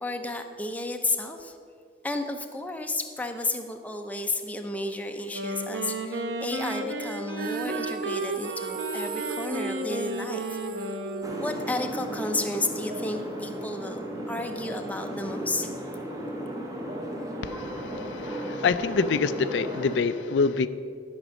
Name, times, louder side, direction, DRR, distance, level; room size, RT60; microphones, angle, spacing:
voice 1, 0.0-1.6 2.0-10.9 11.4-15.7, left 2 dB, 10° left, 5 dB, 0.6 m, -32 dB
Wind instrument woodwind instrument, 5.2-11.7, right 2 dB, 75° right, 0.9 m, -33 dB
Female singing, 7.4-13.6, right 4 dB, 50° right, 0.4 m, -37 dB
Suburban Garden Ambience (Surround), 11.2-20.0, equal, 20° right, 0.9 m, -35 dB
voice 2, 17.4-20.7, left 4 dB, 85° left, 13 dB, 0.4 m, -26 dB
12.0 x 5.2 x 6.4 m, 2.3 s
head